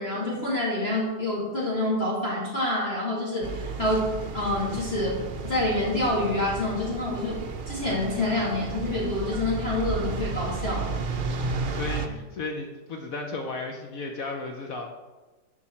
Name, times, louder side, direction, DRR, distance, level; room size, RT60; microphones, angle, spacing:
voice 1, 0.0-10.9, left 1 dB, 35° left, -6 dB, 2.4 m, -27 dB
sound 1, 3.4-12.1, right 4 dB, 80° right, 0.4 m, -33 dB
voice 2, 11.3-14.9, left 3 dB, 65° left, 3 dB, 1.1 m, -35 dB
11.0 x 4.5 x 4.3 m, 1.2 s
omnidirectional pair, 1.8 m